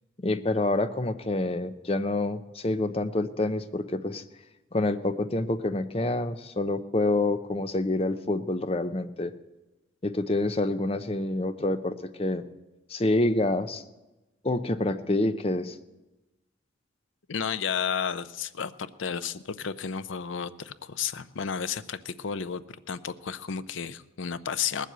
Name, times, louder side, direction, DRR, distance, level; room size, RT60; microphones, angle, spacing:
voice 1, 0.2-4.2 4.7-9.3 10.0-12.4 12.9-13.8 14.4-15.8, left 2 dB, 30° left, 10 dB, 0.6 m, -27 dB
voice 2, 17.3-22.6 22.9-24.9, left 7 dB, 80° left, 13 dB, 0.6 m, -32 dB
19.0 x 7.5 x 8.0 m, 1.1 s
head